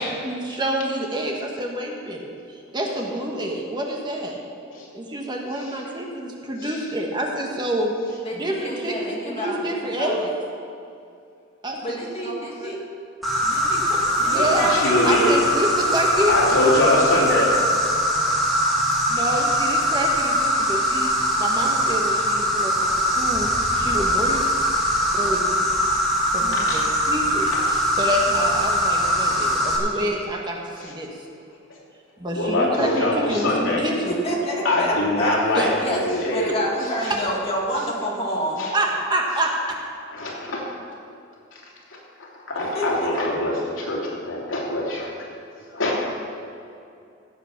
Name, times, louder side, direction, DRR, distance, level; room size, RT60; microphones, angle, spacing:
voice 1, 0.0-2.3 2.7-4.4 4.9-7.9 8.3-10.3 11.6-12.8 14.2-14.7 15.0-16.6 19.1-21.1 21.4-24.4 25.0-25.6 26.3-31.1 32.2-34.1 35.5-35.7 37.1-37.2 38.7-39.8, right 1 dB, 20° right, 0 dB, 1.3 m, -27 dB
voice 2, 8.2-9.6 10.0-10.2 11.8-12.8 13.4-15.4 26.4-26.7 29.9-30.1 33.8-35.4 35.8-38.7 42.7-42.9, equal, 30° left, -3 dB, 2.4 m, -29 dB
Insect, 13.2-29.8, equal, ahead, 2.3 m, -22 dB
voice 3, 14.7-15.4 16.3-17.6 26.5-26.9 27.4-27.6 28.8-28.9 29.4-29.5 30.8-30.9 31.7-31.8 32.4-33.8 34.6-36.6 37.0-37.1 38.6-38.7 40.1-40.7 41.9-45.3 45.8-46.0, left 1 dB, 75° left, -3 dB, 3.0 m, -23 dB
16.5 x 8.0 x 5.9 m, 2.5 s
head